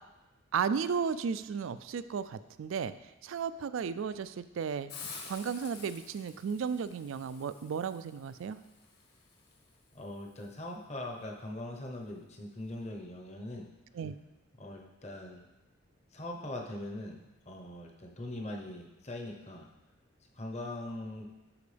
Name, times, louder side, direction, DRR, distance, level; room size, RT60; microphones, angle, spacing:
voice 1, 0.5-2.9 3.2-4.9 5.2-8.6 13.9-14.1, right 6 dB, 75° right, 13 dB, 0.3 m, -34 dB
Hiss, 4.9-10.5, left 4 dB, 50° left, 1.3 m, -50 dB
voice 2, 9.9-13.7 14.6-15.4 16.1-17.2 17.5-19.7 20.4-21.3, left 1 dB, 30° left, 1 dB, 0.9 m, -41 dB
12.0 x 4.5 x 3.4 m, 1.0 s
head